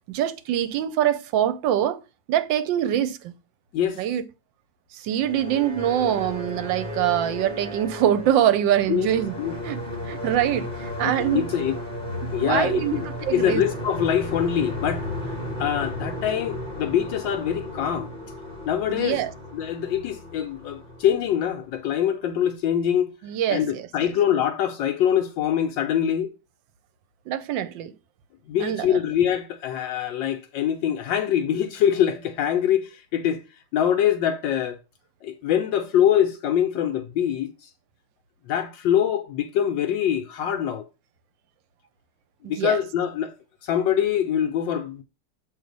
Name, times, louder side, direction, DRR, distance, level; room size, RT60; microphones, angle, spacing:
voice 1, 0.1-2.0 2.3-3.3 4.0-4.2 4.9-9.3 9.6-11.4 12.2-13.6 18.9-19.3 23.2-23.9 27.3-27.9 28.6-29.0 42.4-42.8, right 11 dB, 80° right, 1.4 m, -24 dB
sound 1, 5.1-22.0, left 1 dB, 25° right, 1.9 m, -34 dB
voice 2, 11.0-11.7 12.3-13.0 13.3-15.1 15.6-18.1 18.6-19.2 19.5-23.1 23.5-26.3 28.5-33.4 33.7-34.8 35.2-37.7 38.5-40.8 42.5-43.3 43.6-45.0, left 9 dB, 80° left, 1.4 m, -24 dB
7.2 x 3.2 x 5.2 m
omnidirectional pair, 2.0 m